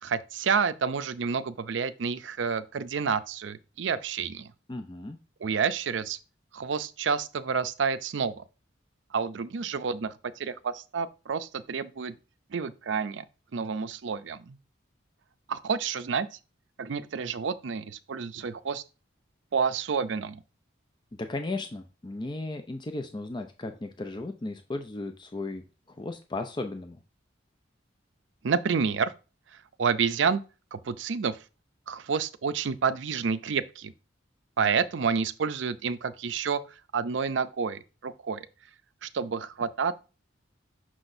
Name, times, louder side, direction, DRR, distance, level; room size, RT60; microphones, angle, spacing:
voice 1, 0.0-4.5 5.4-6.2 6.5-8.4 9.1-12.1 12.5-13.2 13.5-14.6 15.5-16.3 16.8-18.8 19.5-20.4 28.4-29.1 29.8-30.4 30.7-31.4 31.9-33.9 34.6-36.6 36.9-38.5 39.0-40.0, right 6 dB, 75° right, 0.5 m, -29 dB
voice 2, 4.7-5.2 21.2-25.6 25.9-27.0, left 2 dB, 25° left, 0.5 m, -35 dB
6.2 x 5.9 x 2.6 m
head